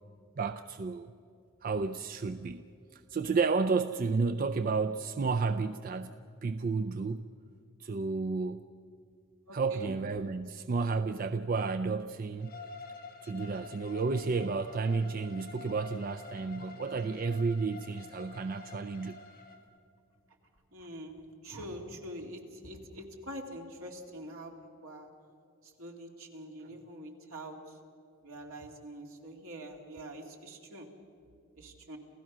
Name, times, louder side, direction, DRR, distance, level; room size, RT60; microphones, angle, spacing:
voice 1, 0.4-1.1 1.6-2.6 2.9-7.2 7.8-8.7 9.5-12.6 13.2-19.2, right 4 dB, 40° right, 10 dB, 0.4 m, -32 dB
voice 2, 9.5-9.9 20.7-24.5 24.8-25.1 25.8-27.6 28.2-30.9 31.6-32.0, right 1 dB, 80° right, 2 dB, 2.5 m, -45 dB
Bowed string instrument, 12.4-19.6, left 4 dB, 45° left, 1.8 m, -49 dB
28.5 x 15.5 x 6.1 m, 2.5 s
head